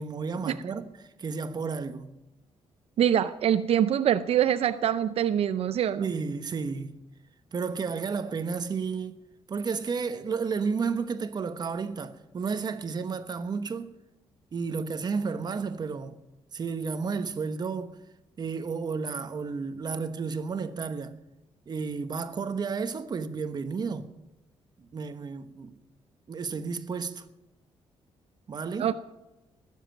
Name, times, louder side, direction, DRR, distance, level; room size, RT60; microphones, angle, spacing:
voice 1, 0.0-2.1 6.0-6.9 7.5-9.2 9.5-13.9 14.5-16.2 16.5-18.0 18.4-21.1 21.7-24.1 24.8-25.7 26.3-27.2 28.5-28.9, right 5 dB, 40° right, 1.1 m, -32 dB
voice 2, 3.0-6.0 28.8-28.9, right 10 dB, 65° right, 0.6 m, -24 dB
20.0 x 7.5 x 9.2 m
cardioid pair, 130°, 11 cm